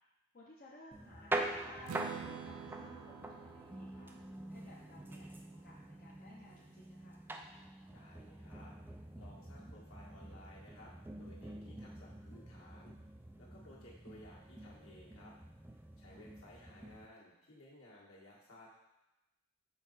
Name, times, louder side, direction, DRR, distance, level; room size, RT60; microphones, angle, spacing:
voice 1, 0.3-4.2 4.5-7.2 16.0-16.2, left 2 dB, 40° left, -5 dB, 0.7 m, -58 dB
sound 1, 0.9-17.1, right 2 dB, 10° right, 0.4 m, -45 dB
Strum, 1.8-5.8, right 8 dB, 80° right, 0.4 m, -49 dB
voice 2, 7.9-12.9 13.4-15.3 16.0-18.7, left 1 dB, 70° left, -5 dB, 1.8 m, -58 dB
6.3 x 4.2 x 4.0 m, 0.98 s
head